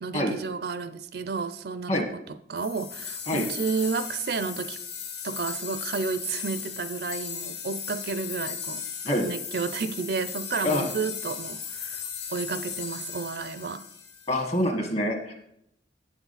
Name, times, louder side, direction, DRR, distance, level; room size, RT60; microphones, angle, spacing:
voice 1, 0.0-2.0 2.5-4.8 5.2-8.9 9.2-13.8, right 5 dB, 60° right, 12 dB, 0.4 m, -31 dB
sound 1, 2.6-14.6, left 7 dB, 70° left, 1.7 m, -37 dB
voice 2, 14.3-15.3, left 1 dB, 40° left, 4 dB, 1.4 m, -25 dB
8.3 x 7.1 x 4.1 m, 0.74 s
head